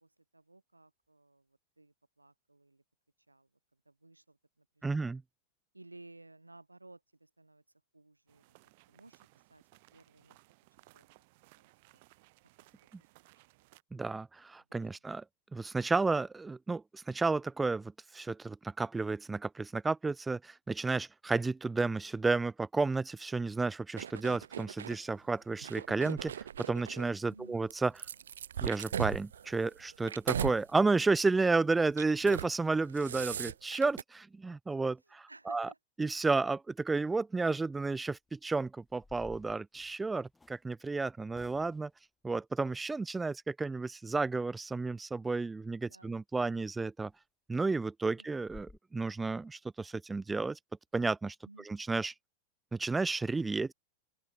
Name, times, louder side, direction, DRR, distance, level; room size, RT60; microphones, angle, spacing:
voice 1, 0.0-2.8 3.3-3.5 3.8-5.2 5.7-7.6 7.9-8.5 8.9-9.2 9.5-9.6 9.9-10.4 10.9-11.1 11.5-11.7 27.3-27.6 35.3-35.8 45.9-46.2 48.2-48.3 51.4-51.7, right 2 dB, 85° right, 6.7 m, -57 dB
voice 2, 4.8-5.2 13.9-15.2 15.5-28.0 28.6-35.7 36.0-41.9 42.2-47.1 47.5-50.6 50.9-51.4 51.6-52.1 52.7-53.7, right 3 dB, 10° right, 1.0 m, -32 dB
sound 1, 8.3-13.8, right 24 dB, 50° right, 5.5 m, -63 dB
sound 2, 24.0-25.0 25.6-27.1 27.7-30.6 31.0-31.3 31.9-32.5 32.8-34.0, right 9 dB, 65° right, 2.0 m, -38 dB
sound 3, 38.0-38.3 38.8-40.6 41.3-42.0 46.5-46.6 47.1-47.2 47.6-47.7 48.0-48.1 48.4-48.8, left 3 dB, 10° left, 2.4 m, -55 dB
open air
figure-of-eight pair, 90°, 0 cm